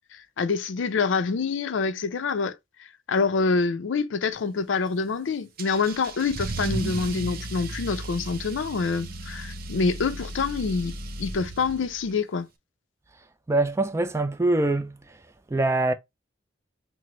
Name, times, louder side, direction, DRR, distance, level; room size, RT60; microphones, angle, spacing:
voice 1, 0.1-2.6 3.1-12.5, left 4 dB, 80° left, 0.4 m, -26 dB
Car / Engine starting / Accelerating revving vroom, 5.6-12.1, right 2 dB, 50° right, 0.6 m, -35 dB
voice 2, 13.5-15.0 15.5-15.9, right 2 dB, 15° right, 0.3 m, -23 dB
5.8 x 2.0 x 3.0 m
head